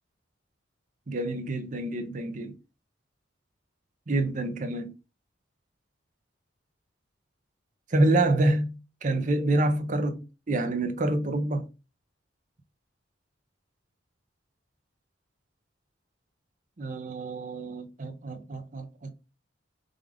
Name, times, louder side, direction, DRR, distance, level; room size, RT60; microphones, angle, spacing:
voice 1, 1.1-2.5 4.1-4.9 7.9-11.7 16.8-19.1, right 2 dB, 40° right, 0.6 m, -27 dB
5.1 x 2.4 x 3.5 m
head